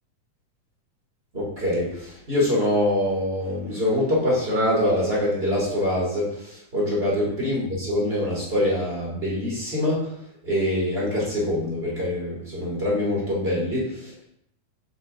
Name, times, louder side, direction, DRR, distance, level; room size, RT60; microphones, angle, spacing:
voice 1, 1.3-10.1 10.4-14.2, left 1 dB, 20° right, -6 dB, 2.5 m, -24 dB
7.6 x 7.3 x 2.7 m, 0.75 s
omnidirectional pair, 3.8 m